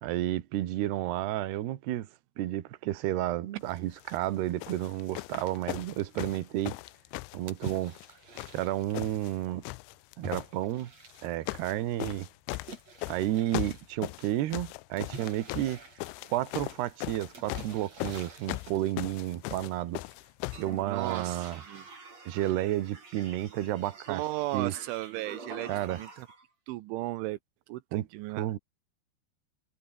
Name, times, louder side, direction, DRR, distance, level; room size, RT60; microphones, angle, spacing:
voice 1, 0.0-2.1 2.4-6.8 7.3-8.0 8.5-9.6 10.2-10.9 11.2-12.3 13.1-15.8 16.3-20.0 20.6-21.6 22.3-24.2 24.5-24.7 25.7-26.0 27.9-28.1 28.4-28.6, right 14 dB, 70° right, 3.3 m, -31 dB
sound 1, 4.0-4.2 4.6-8.1 8.4-9.3 9.6-10.5 11.1-11.7 12.0-20.7 21.5-21.6, left 23 dB, 85° left, 2.8 m, -38 dB
sound 2, 7.5-9.3 10.2-11.5 12.5-13.9 15.0-16.7 17.3-18.9 19.5-20.1 20.4-26.4, right 3 dB, 35° right, 7.0 m, -47 dB
voice 2, 20.9-21.9 24.1-26.3 26.7-27.4 27.7-28.5, right 17 dB, 85° right, 3.3 m, -35 dB
omnidirectional pair, 5.4 m